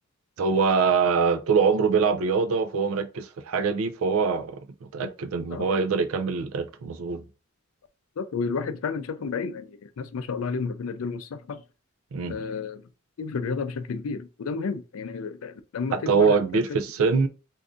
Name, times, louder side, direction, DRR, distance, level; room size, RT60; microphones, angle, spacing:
voice 1, 0.4-7.2 12.1-12.3 15.9-17.3, right 5 dB, 70° right, 0.4 m, -24 dB
voice 2, 8.2-11.6 12.3-12.8 13.2-16.6, left 5 dB, 75° left, 0.4 m, -31 dB
2.6 x 2.5 x 3.5 m
head